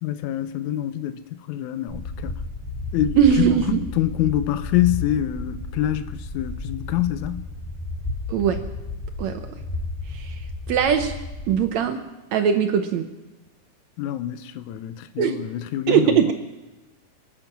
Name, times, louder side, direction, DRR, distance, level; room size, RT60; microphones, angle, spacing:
voice 1, 0.0-2.4 2.9-7.4 14.0-16.3, left 12 dB, 80° left, 2.1 m, -26 dB
sound 1, 1.9-11.6, left 3 dB, 5° left, 4.2 m, -33 dB
voice 2, 3.2-3.8 8.3-8.6 9.2-9.4 10.1-10.4 10.7-11.1 11.5-12.0 12.3-13.1 15.2-15.4 15.9-16.3, right 8 dB, 70° right, 2.0 m, -20 dB
25.0 x 9.0 x 6.0 m
omnidirectional pair, 3.5 m